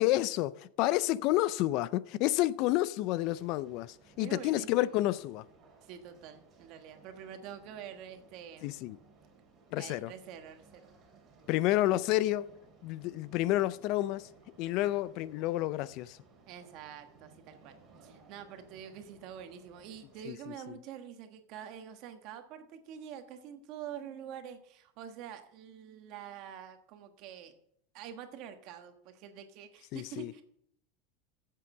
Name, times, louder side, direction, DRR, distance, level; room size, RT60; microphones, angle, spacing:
voice 1, 0.0-5.4 8.6-9.0 9.7-10.1 11.5-12.5 12.8-14.3 14.6-16.2 20.3-20.4 29.9-30.3, left 16 dB, 50° left, 0.4 m, -30 dB
sound 1, 3.1-20.3, right 4 dB, 25° right, 2.9 m, -60 dB
voice 2, 4.2-5.0 5.8-8.8 9.8-10.9 16.5-27.5 27.9-30.4, right 9 dB, 50° right, 1.3 m, -46 dB
8.0 x 7.5 x 7.2 m
supercardioid pair, 150°, 0 cm